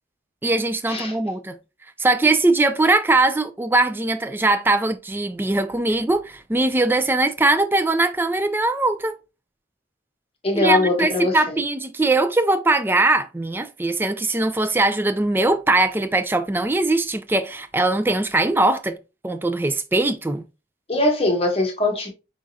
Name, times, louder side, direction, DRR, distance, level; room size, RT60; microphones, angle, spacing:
voice 1, 0.4-1.6 2.0-9.2 10.5-19.0 19.2-20.4, right 2 dB, 10° right, 0.3 m, -21 dB
voice 2, 10.4-11.3 20.9-22.1, left 2 dB, 35° left, 1.2 m, -21 dB
5.0 x 3.7 x 2.7 m
head